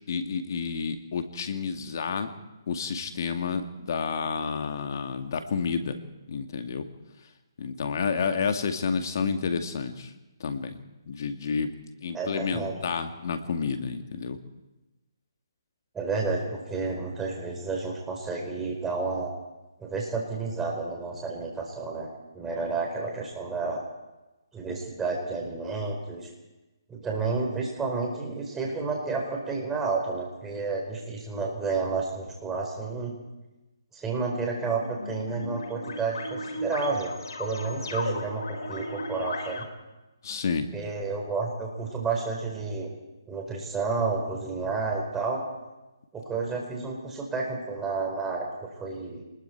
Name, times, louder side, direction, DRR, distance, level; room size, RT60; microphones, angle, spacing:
voice 1, 0.1-2.3 2.7-6.0 6.3-6.8 7.6-10.1 10.4-10.8 11.1-11.7 12.0-14.4 40.2-40.7, left 5 dB, 55° left, 6 dB, 2.1 m, -30 dB
voice 2, 12.1-12.7 15.9-19.3 19.8-22.1 22.3-23.8 24.5-26.3 26.9-33.1 33.9-39.7 40.7-42.9 43.3-45.4 46.1-49.2, right 4 dB, 10° right, -1 dB, 4.7 m, -31 dB
sound 1, 34.2-39.7, left 1 dB, 70° left, 3.3 m, -35 dB
27.5 x 20.5 x 4.7 m, 1.1 s
hypercardioid pair, 155°, 2 cm